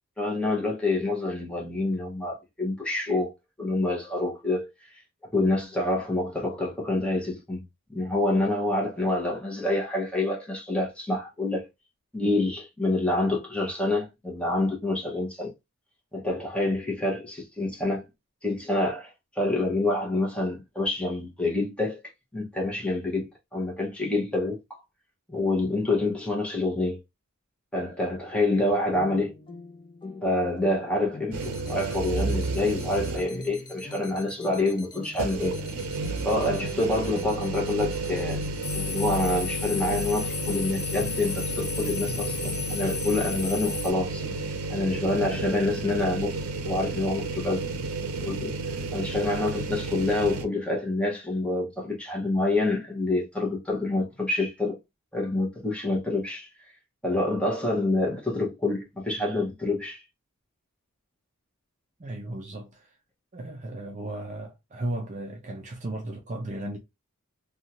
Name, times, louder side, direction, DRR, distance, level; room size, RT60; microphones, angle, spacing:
voice 1, 0.2-3.3 3.6-4.7 5.3-7.6 7.9-11.7 12.1-15.5 16.1-18.0 18.4-22.0 22.3-24.8 25.3-27.0 27.7-29.3 30.2-35.6 36.2-38.4 38.9-44.3 44.7-47.7 48.2-54.8 55.1-56.5 57.0-60.0, left 2 dB, 5° left, 0.9 m, -27 dB
sound 1, 28.9-46.4, left 2 dB, 20° left, 0.5 m, -44 dB
sound 2, 31.3-33.5 33.9-34.0 35.1-50.4, right 3 dB, 85° right, 0.6 m, -32 dB
sound 3, 31.4-43.9, left 8 dB, 80° left, 0.7 m, -37 dB
voice 2, 62.0-63.0 63.3-66.8, right 1 dB, 35° right, 0.5 m, -35 dB
2.7 x 2.3 x 2.8 m
head